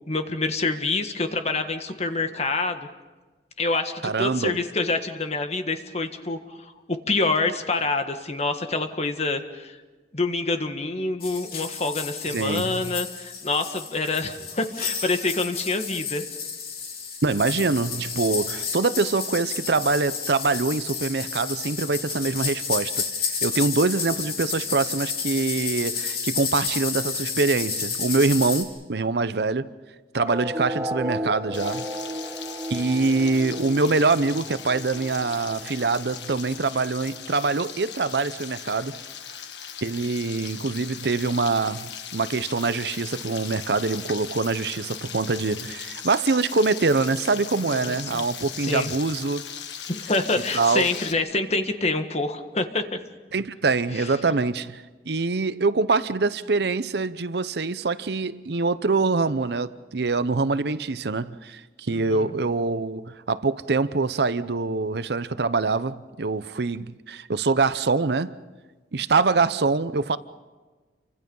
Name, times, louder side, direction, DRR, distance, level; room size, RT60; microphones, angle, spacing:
voice 1, 0.1-2.9 3.6-6.7 7.1-9.8 10.1-16.2 47.7-48.2 48.6-48.9 49.9-53.0 53.9-54.4 61.9-62.4, left 3 dB, 40° left, 1.6 m, -27 dB
voice 2, 4.0-4.6 12.3-13.0 17.2-23.0 23.4-29.7 30.1-31.9 32.7-38.9 39.8-49.5 50.5-50.9 53.3-68.4 68.9-70.2, right 3 dB, 65° right, 0.7 m, -24 dB
sound 1, 11.2-28.6, left 6 dB, 60° left, 3.9 m, -31 dB
sound 2, 30.2-37.2, equal, 15° right, 1.1 m, -34 dB
Frying (food), 31.5-51.1, left 8 dB, 90° left, 1.5 m, -38 dB
29.0 x 25.0 x 5.5 m
head